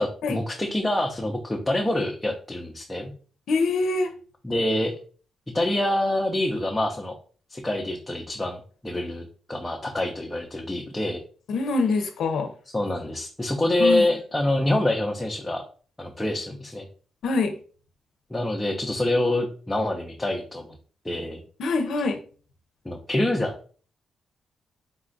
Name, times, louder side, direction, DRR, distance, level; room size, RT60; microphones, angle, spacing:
voice 1, 0.0-3.1 4.4-4.9 5.5-7.1 7.5-8.6 8.8-11.2 12.7-15.6 16.0-16.8 18.3-20.7 21.0-21.4 22.9-23.7, left 1 dB, 10° left, 0 dB, 0.5 m, -26 dB
voice 2, 3.5-4.1 11.5-12.5 13.8-14.0 17.2-17.6 21.6-22.2, left 3 dB, 80° left, 5 dB, 0.5 m, -24 dB
4.1 x 2.4 x 3.8 m, 0.41 s
wide cardioid pair, 145°, 0 cm